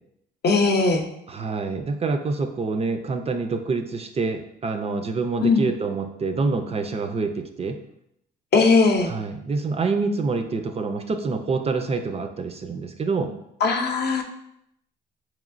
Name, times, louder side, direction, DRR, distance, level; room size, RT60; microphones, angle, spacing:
voice 1, 0.4-1.0 5.4-5.6 8.5-9.1 13.6-14.2, left 4 dB, 55° left, 4 dB, 0.6 m, -19 dB
voice 2, 1.3-7.8 9.1-13.3, right 4 dB, 30° right, 6 dB, 0.4 m, -26 dB
4.7 x 3.0 x 2.5 m, 0.78 s
cardioid pair, 90°, 20 cm